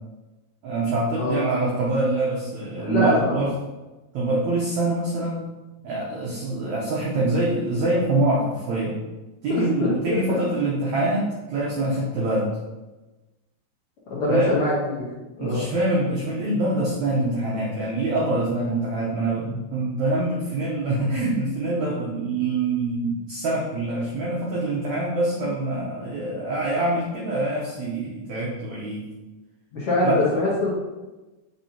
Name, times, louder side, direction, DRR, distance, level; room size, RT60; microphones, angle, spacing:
voice 1, 0.6-3.5 4.1-5.5 5.8-9.0 9.4-12.5 14.3-14.5 15.4-29.1 30.0-30.2, right 2 dB, 80° right, -4 dB, 1.6 m, -25 dB
voice 2, 1.2-1.5 2.8-3.5 9.5-10.4 14.1-15.1 15.4-15.7 29.7-30.7, left 2 dB, 70° left, -7 dB, 1.3 m, -23 dB
6.5 x 5.4 x 2.8 m, 1.1 s
omnidirectional pair, 4.5 m